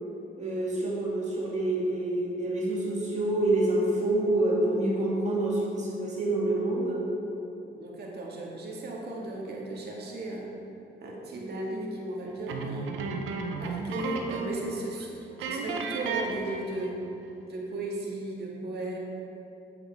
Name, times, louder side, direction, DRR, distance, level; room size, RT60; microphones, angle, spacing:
voice 1, 0.4-7.1, right 1 dB, 35° right, -5 dB, 2.0 m, -27 dB
voice 2, 7.8-10.5 11.0-12.9 13.5-15.1 15.4-17.0 17.4-19.0, right 2 dB, 55° right, -3 dB, 1.9 m, -35 dB
sound 1, 12.5-14.7 14.9-15.0 15.4-17.0, right 4 dB, 85° right, 0.8 m, -34 dB
8.4 x 8.1 x 3.5 m, 3.0 s
cardioid pair, 90°, 20 cm